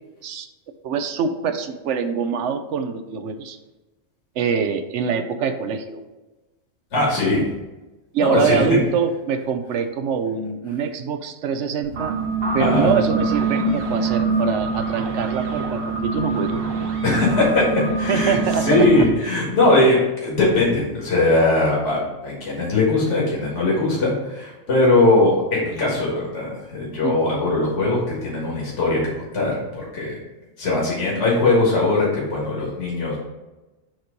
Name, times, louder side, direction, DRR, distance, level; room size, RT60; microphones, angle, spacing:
voice 1, 0.8-3.6 4.4-6.0 8.1-12.2 12.5-16.6 18.1-18.9 27.0-27.6, right 6 dB, 70° right, 8 dB, 0.9 m, -24 dB
voice 2, 6.9-7.4 8.2-8.6 12.6-12.9 17.0-17.6 18.0-29.0 29.3-30.1 30.6-33.2, left 2 dB, 65° left, -5 dB, 1.9 m, -20 dB
sound 1, 11.8-19.0, right 4 dB, 50° right, 1.3 m, -24 dB
7.5 x 2.9 x 5.1 m, 1.1 s
omnidirectional pair, 1.3 m